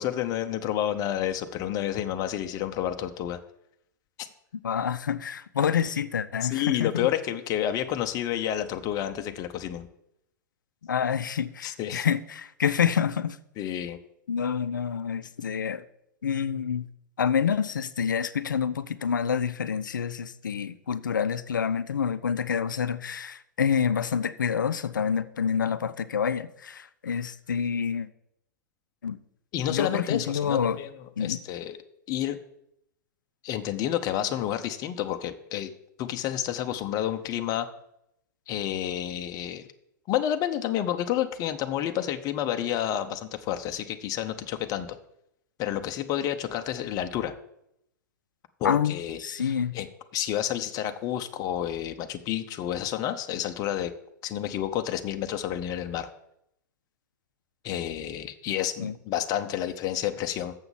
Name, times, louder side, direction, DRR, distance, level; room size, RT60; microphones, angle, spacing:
voice 1, 0.0-3.4 4.2-4.3 6.4-9.9 11.6-12.1 13.6-14.0 29.5-31.8 32.1-32.4 33.4-35.7 36.0-37.7 38.5-39.7 40.1-45.0 45.6-47.4 48.6-49.9 50.1-53.9 54.2-56.1 57.6-60.5, left 11 dB, 35° left, 7 dB, 0.7 m, -30 dB
voice 2, 4.6-7.1 10.8-13.4 14.3-15.8 16.2-16.9 17.2-28.1 29.0-29.2 29.7-30.8 31.2-31.4 48.6-49.8 58.8-58.9, left 7 dB, 80° left, 14 dB, 0.5 m, -27 dB
7.3 x 5.8 x 7.1 m, 0.77 s
hypercardioid pair, 105°, 10 cm